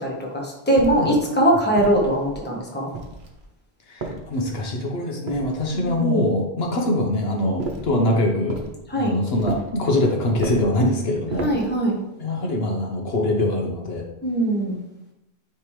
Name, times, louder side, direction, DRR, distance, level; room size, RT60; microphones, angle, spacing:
voice 1, 0.0-2.9 5.7-6.2 8.9-9.1 11.4-12.0 14.2-14.8, right 1 dB, 10° left, -2 dB, 1.2 m, -21 dB
sound 1, 0.8-1.2 1.8-2.4 2.9-3.5 4.0-4.7 5.3-6.0 7.6-8.0 8.5-8.8 9.4-9.8 10.3-10.8 11.3-11.7, right 2 dB, 55° right, 0.9 m, -33 dB
voice 2, 3.9-8.6 9.0-11.5 12.2-14.0, left 1 dB, 65° left, 1 dB, 1.1 m, -23 dB
9.0 x 3.4 x 3.2 m, 0.88 s
omnidirectional pair, 1.1 m